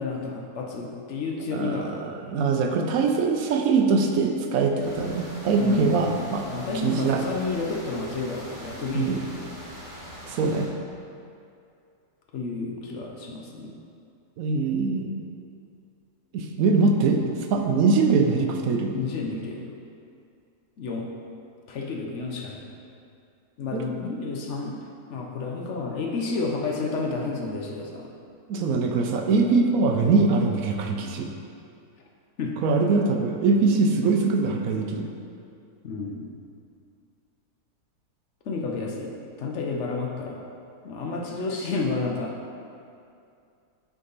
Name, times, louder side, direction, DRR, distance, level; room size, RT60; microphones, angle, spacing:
voice 1, 0.0-2.0 5.6-9.6 9.8-10.0 12.3-13.8 18.9-19.7 20.8-21.1 21.7-22.7 23.6-24.8 25.1-28.1 32.4-32.6 33.7-33.9 35.8-36.3 38.4-40.4 40.8-42.3, left 3 dB, 60° left, -1 dB, 0.9 m, -31 dB
voice 2, 1.5-6.5 6.8-7.2 8.9-9.2 10.3-10.7 14.4-15.2 16.3-17.2 17.5-18.9 23.7-23.8 28.5-31.3 32.6-35.1, right 4 dB, 70° right, 3 dB, 1.0 m, -22 dB
sound 1, 4.8-10.7, equal, 25° left, 1.3 m, -42 dB
8.1 x 3.8 x 4.0 m, 2.5 s
omnidirectional pair, 1.6 m